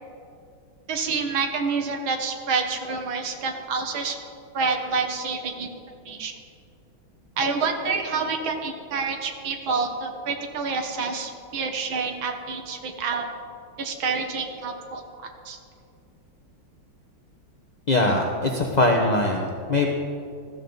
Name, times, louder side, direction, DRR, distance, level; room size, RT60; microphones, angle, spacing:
voice 1, 0.9-4.2 4.5-5.7 6.1-6.3 7.4-13.2 13.8-15.6, right 4 dB, 75° right, 4 dB, 2.1 m, -28 dB
voice 2, 17.9-19.9, left 2 dB, 35° left, 0 dB, 0.7 m, -22 dB
20.5 x 14.5 x 4.0 m, 2.4 s
omnidirectional pair, 2.2 m